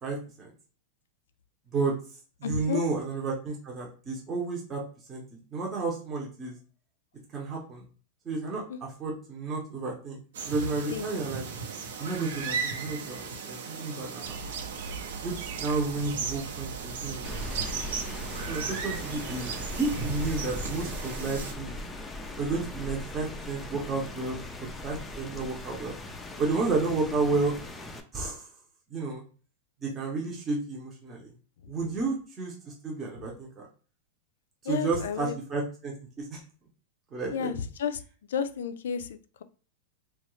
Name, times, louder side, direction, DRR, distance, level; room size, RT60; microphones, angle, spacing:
voice 1, 0.0-0.5 1.7-1.9 2.4-4.8 5.1-5.2 5.5-6.6 7.3-7.8 8.2-10.2 10.5-11.4 12.0-14.6 15.2-17.6 18.5-19.5 19.8-21.8 22.4-24.4 24.8-25.9 26.4-27.5 28.1-28.5 28.9-29.2 29.8-31.3 31.7-32.5 32.8-33.6 34.6-36.4 37.1-37.5, right 3 dB, 20° right, -2 dB, 0.7 m, -31 dB
voice 2, 2.4-2.8 8.7-8.8 10.9-11.1 31.6-31.7 34.6-35.4 37.3-38.0 38.3-39.4, left 7 dB, 85° left, 12 dB, 0.3 m, -32 dB
sound 1, 10.3-21.5, right 5 dB, 85° right, 0.8 m, -37 dB
sound 2, 14.2-20.3, right 6 dB, 65° right, 0.4 m, -39 dB
Rain, 17.2-28.0, left 2 dB, 10° left, 0.4 m, -39 dB
3.0 x 2.3 x 3.0 m, 0.39 s
supercardioid pair, 155°, 0 cm